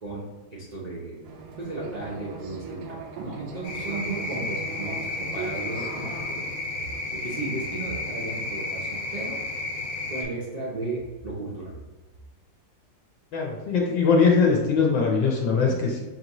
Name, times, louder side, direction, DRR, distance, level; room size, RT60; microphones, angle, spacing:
voice 1, 0.0-1.2 1.6-6.4 6.8-9.4 10.1-11.8, right 2 dB, 45° right, -8 dB, 0.5 m, -35 dB
sound 1, 1.2-6.2, right 5 dB, 70° right, 1.0 m, -40 dB
sound 2, 3.6-10.2, left 2 dB, 55° left, 1.0 m, -32 dB
voice 2, 13.3-16.2, left 5 dB, 80° left, -1 dB, 1.4 m, -21 dB
6.0 x 2.6 x 2.9 m, 1.2 s
omnidirectional pair, 2.0 m